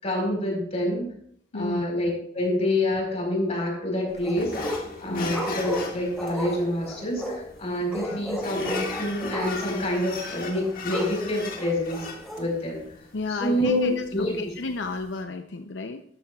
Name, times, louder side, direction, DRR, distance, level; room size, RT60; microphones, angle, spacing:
voice 1, 0.0-1.1 1.5-4.6 5.0-12.1 12.4-12.8 13.3-14.5, left 1 dB, 35° left, 0 dB, 4.3 m, -27 dB
voice 2, 1.5-1.9 5.1-5.3 8.0-8.2 13.1-16.0, left 3 dB, 75° left, 6 dB, 0.6 m, -32 dB
sound 1, 4.1-4.9 5.3-7.5 7.9-9.8 10.0-10.1 10.5-11.2 11.6-12.4, equal, ahead, 2.5 m, -34 dB
sound 2, 4.4-15.2, left 3 dB, 50° left, 1.6 m, -38 dB
13.5 x 12.5 x 2.4 m, 0.66 s
head